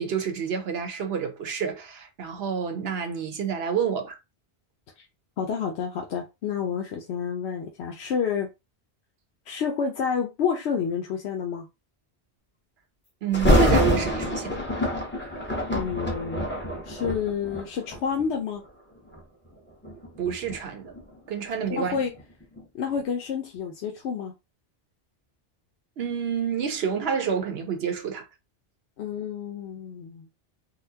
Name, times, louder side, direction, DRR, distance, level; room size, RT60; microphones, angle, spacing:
voice 1, 0.0-4.2 13.2-14.6 20.2-20.9 21.3-21.9 26.0-28.3, right 7 dB, 70° right, 1.0 m, -28 dB
voice 2, 5.4-8.5 9.5-11.7 15.3-15.4 15.7-16.5 16.8-18.6 21.7-22.1 22.7-24.3 29.0-30.3, left 7 dB, 85° left, 0.9 m, -29 dB
Thunder, 13.3-18.3 19.0-19.2 19.8-22.7 23.0-23.1, equal, 10° left, 0.9 m, -26 dB
4.0 x 2.1 x 2.7 m
omnidirectional pair, 1.1 m